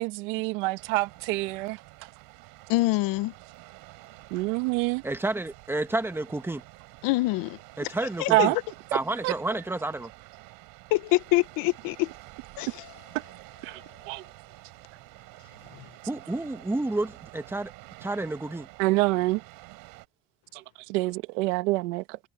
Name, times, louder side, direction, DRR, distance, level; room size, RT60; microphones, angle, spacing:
voice 1, 0.0-1.8 4.3-5.0 8.3-8.6 9.2-9.3 13.1-13.2 13.6-14.2 18.8-19.4 20.5-22.2, right 22 dB, 90° right, 1.7 m, -26 dB
sound 1, 0.8-20.1, right 23 dB, 70° right, 7.5 m, -49 dB
voice 2, 2.7-3.3 7.0-8.5 10.9-12.1 12.6-12.9 13.7-13.9 15.7-15.9, left 20 dB, 65° left, 1.1 m, -26 dB
voice 3, 5.0-6.6 7.8-8.5 8.9-10.1 16.1-17.7 18.0-18.7, right 2 dB, 5° right, 1.9 m, -30 dB
cardioid pair, 135°, 36 cm